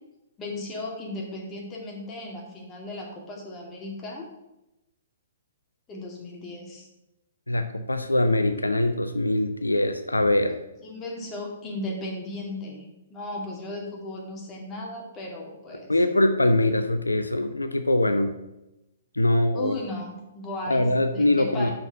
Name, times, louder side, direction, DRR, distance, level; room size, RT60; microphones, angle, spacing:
voice 1, 0.4-4.3 5.9-6.9 10.8-12.8 13.1-15.9 19.5-21.7, left 1 dB, 20° left, -1 dB, 2.3 m, -36 dB
voice 2, 7.5-10.6 15.9-18.3 19.1-19.8 20.7-21.7, left 1 dB, 85° left, 8 dB, 0.6 m, -23 dB
6.5 x 6.0 x 6.3 m, 0.92 s
figure-of-eight pair, 120°, 0 cm